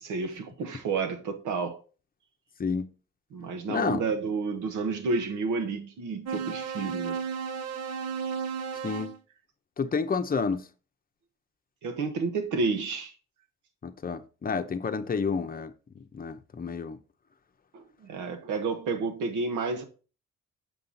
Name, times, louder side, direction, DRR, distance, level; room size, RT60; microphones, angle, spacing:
voice 1, 0.0-1.8 3.3-7.2 11.8-13.1 17.7-19.8, right 4 dB, 80° right, 1.3 m, -30 dB
voice 2, 3.7-4.0 8.8-9.1 9.8-10.7 13.8-17.0, left 5 dB, 30° left, 0.8 m, -30 dB
sound 1, 6.3-9.2, right 6 dB, 60° right, 0.8 m, -33 dB
6.9 x 5.5 x 3.9 m
cardioid pair, 90°, 30 cm